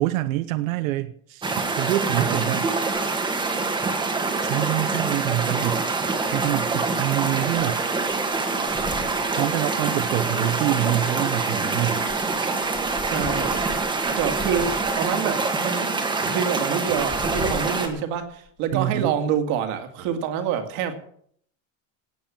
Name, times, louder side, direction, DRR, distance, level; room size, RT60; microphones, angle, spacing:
voice 1, 0.0-2.7 4.4-5.9 6.3-7.8 9.3-12.1 18.7-19.1, right 14 dB, 90° right, 12 dB, 0.9 m, -26 dB
sound 1, 1.4-17.9, right 3 dB, 10° right, 1.5 m, -25 dB
sound 2, 2.7-3.1 3.4-3.5 3.8-3.9 5.3-5.9 6.3-6.4 7.5-7.6 8.0-9.6 10.0-11.0 11.8-15.3 15.9-16.0 16.8-18.7, left 4 dB, 10° left, 0.7 m, -40 dB
voice 2, 13.0-13.7 14.2-15.9 16.2-20.9, right 8 dB, 50° right, 7 dB, 2.2 m, -27 dB
17.5 x 7.8 x 7.3 m, 0.64 s
supercardioid pair, 175°, 39 cm